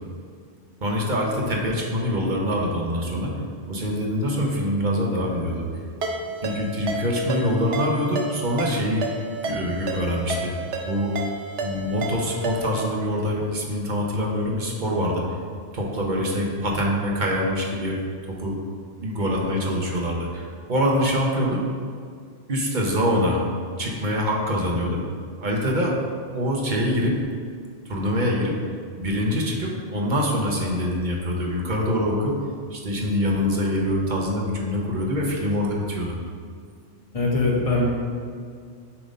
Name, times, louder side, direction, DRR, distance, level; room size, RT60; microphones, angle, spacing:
voice 1, 0.8-3.3 3.7-5.7 6.4-9.1 9.4-10.5 10.8-11.2 11.6-15.3 15.7-17.9 18.4-18.6 19.0-21.6 22.5-23.4 23.8-25.0 25.4-26.0 26.3-27.3 27.8-28.6 29.0-32.4 32.7-36.1, equal, 45° right, -2 dB, 1.0 m, -24 dB
Ringtone, 6.0-12.9, right 3 dB, 70° right, 1.1 m, -31 dB
voice 2, 37.1-37.8, left 3 dB, 30° left, -4 dB, 1.4 m, -21 dB
7.1 x 3.8 x 5.3 m, 2.1 s
omnidirectional pair, 1.2 m